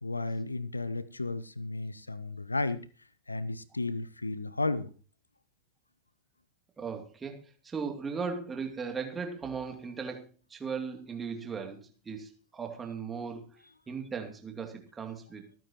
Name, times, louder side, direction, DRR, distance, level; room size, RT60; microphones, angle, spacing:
voice 1, 0.0-2.8 3.3-4.9, left 2 dB, 80° left, 0.7 m, -33 dB
voice 2, 6.8-7.4 7.6-15.4, right 5 dB, 15° right, 2.6 m, -37 dB
25.0 x 9.2 x 3.0 m
figure-of-eight pair, 90°, 0 cm